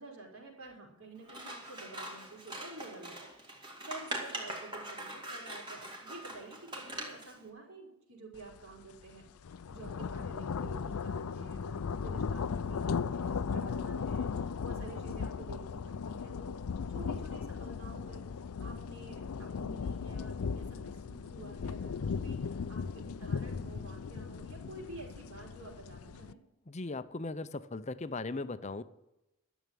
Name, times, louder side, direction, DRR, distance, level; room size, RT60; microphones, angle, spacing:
voice 1, 0.0-3.3 3.6-16.5 16.9-18.2 18.6-26.4, right 2 dB, 75° right, -2 dB, 5.1 m, -50 dB
Scissors, 1.2-7.4, right 1 dB, 20° right, 2.2 m, -42 dB
sound 1, 8.5-8.7 9.1-26.3, left 5 dB, 90° left, 0.5 m, -37 dB
voice 2, 26.7-28.8, left 3 dB, 30° left, 14 dB, 0.6 m, -38 dB
12.5 x 7.2 x 9.2 m, 0.93 s
head